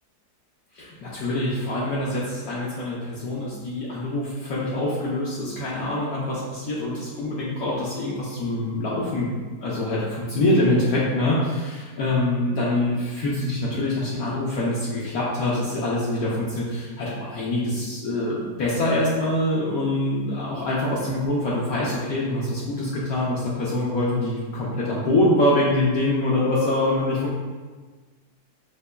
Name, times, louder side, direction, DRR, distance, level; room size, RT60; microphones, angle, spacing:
voice 1, 0.7-27.4, left 1 dB, 70° left, -7 dB, 1.0 m, -25 dB
5.2 x 2.1 x 2.2 m, 1.4 s
omnidirectional pair, 1.7 m